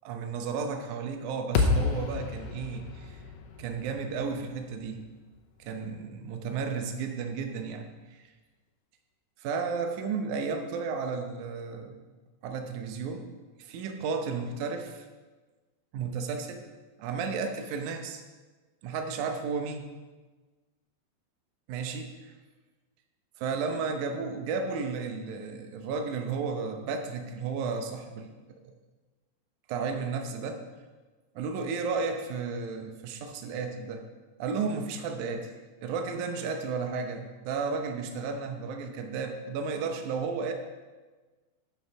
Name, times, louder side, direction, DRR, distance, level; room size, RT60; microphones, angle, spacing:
voice 1, 0.0-3.2 3.6-5.0 5.6-8.3 9.4-12.0 12.4-13.3 13.6-15.0 15.9-16.6 17.0-18.2 18.8-19.9 21.7-22.0 23.4-28.3 29.7-30.6 31.3-34.1 34.4-35.5 35.8-40.5, right 5 dB, 85° right, 5 dB, 1.7 m, -33 dB
sound 1, 1.5-5.8, left 4 dB, 80° left, 2.8 m, -31 dB
8.1 x 7.0 x 6.0 m, 1.3 s
omnidirectional pair, 4.7 m